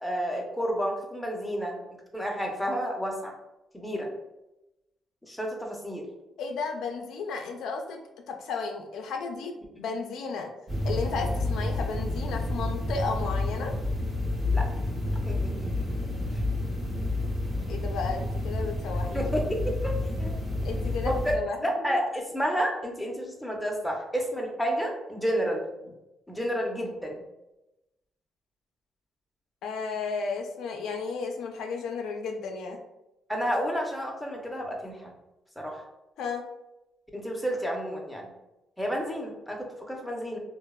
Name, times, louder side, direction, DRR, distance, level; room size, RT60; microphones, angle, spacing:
voice 1, 0.0-1.8 2.1-3.3 3.7-4.1 5.2-6.0 9.8-9.9 14.5-14.7 15.3-15.9 19.1-20.3 21.0-21.3 21.6-25.6 26.3-27.2 33.3-35.1 35.6-35.8 37.1-38.3 38.8-40.4, equal, 5° left, 0 dB, 0.6 m, -30 dB
voice 2, 6.4-8.0 8.3-10.5 10.8-13.7 17.7-19.3 20.6-22.0 29.6-32.8 36.2-36.4, left 4 dB, 80° left, 3 dB, 0.3 m, -33 dB
sound 1, 10.7-21.3, left 2 dB, 35° right, 0.7 m, -29 dB
3.0 x 2.0 x 2.2 m, 0.95 s
cardioid pair, 90°, 0 cm